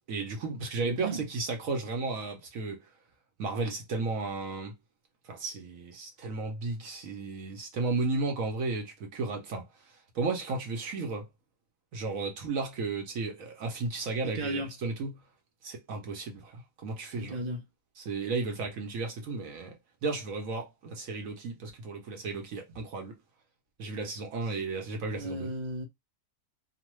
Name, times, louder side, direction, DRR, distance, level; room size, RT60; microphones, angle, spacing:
voice 1, 0.1-2.8 3.4-4.7 5.3-9.7 10.1-11.3 11.9-15.2 15.6-17.4 18.0-19.7 20.0-23.2 23.8-25.5, right 3 dB, 60° right, 1.0 m, -34 dB
voice 2, 0.8-1.2 14.3-14.7 17.2-17.6 25.1-25.9, right 1 dB, 45° right, 0.5 m, -34 dB
2.9 x 2.2 x 3.0 m
omnidirectional pair, 1.9 m